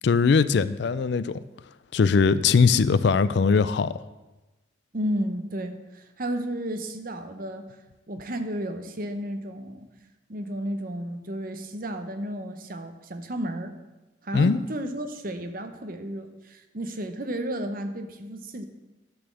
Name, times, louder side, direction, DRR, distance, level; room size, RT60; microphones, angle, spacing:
voice 1, 0.0-1.4 1.9-3.9 14.3-14.6, left 5 dB, 55° left, 15 dB, 0.4 m, -20 dB
voice 2, 4.9-7.6 8.1-9.9 10.3-13.8 14.2-18.7, right 1 dB, 45° right, 8 dB, 0.8 m, -33 dB
11.0 x 4.3 x 7.5 m, 1.1 s
head